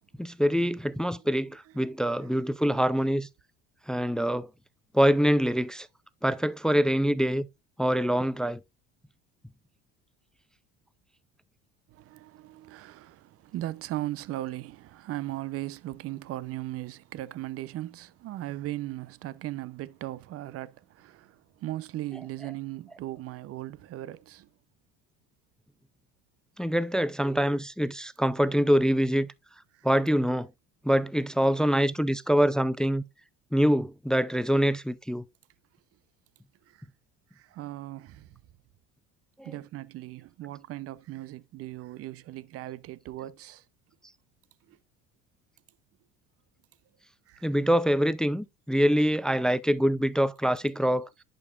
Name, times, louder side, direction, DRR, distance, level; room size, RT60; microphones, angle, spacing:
voice 1, 0.2-3.3 3.9-4.5 4.9-5.9 6.2-7.5 7.8-8.6 22.1-22.6 26.6-29.3 29.8-30.5 30.8-33.0 33.5-35.2 39.4-39.5 47.4-51.1, equal, ahead, 0.4 m, -25 dB
voice 2, 1.8-2.5 11.9-24.5 29.7-29.9 36.7-36.9 37.3-38.4 39.4-43.6 44.7-44.8 47.3-47.5, right 15 dB, 50° right, 0.7 m, -38 dB
10.5 x 5.3 x 2.4 m
supercardioid pair, 95°, 29 cm